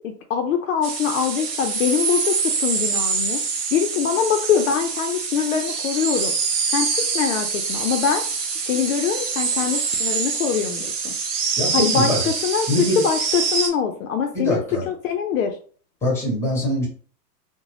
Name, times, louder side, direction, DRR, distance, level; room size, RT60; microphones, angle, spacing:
voice 1, 0.0-3.4 3.7-6.3 6.7-8.3 8.7-11.1 11.7-15.6, left 7 dB, 55° left, 5 dB, 0.5 m, -23 dB
sound 1, 0.8-13.7, right 5 dB, 40° right, 0.7 m, -25 dB
voice 2, 11.6-12.2 12.7-13.0 14.3-14.9 16.0-16.9, left 1 dB, 5° left, -1 dB, 0.9 m, -23 dB
2.5 x 2.1 x 3.2 m, 0.43 s
hypercardioid pair, 135°, 48 cm